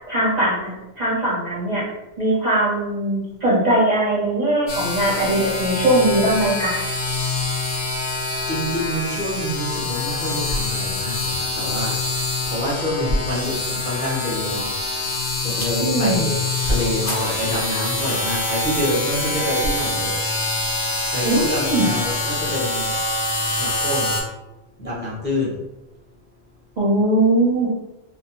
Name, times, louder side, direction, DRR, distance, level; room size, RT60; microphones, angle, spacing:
voice 1, 0.1-1.8 2.2-6.7 15.8-16.3 21.2-21.4 21.7-21.9 26.8-27.7, right 1 dB, 45° right, -7 dB, 0.6 m, -20 dB
sound 1, 4.7-24.2, left 2 dB, 55° left, 0.8 m, -25 dB
voice 2, 8.5-12.0 12.4-15.1 15.4-20.6 21.1-23.0 23.4-24.2 24.8-25.6, equal, 10° left, -7 dB, 0.5 m, -26 dB
2.6 x 2.0 x 2.9 m, 0.97 s
omnidirectional pair, 1.3 m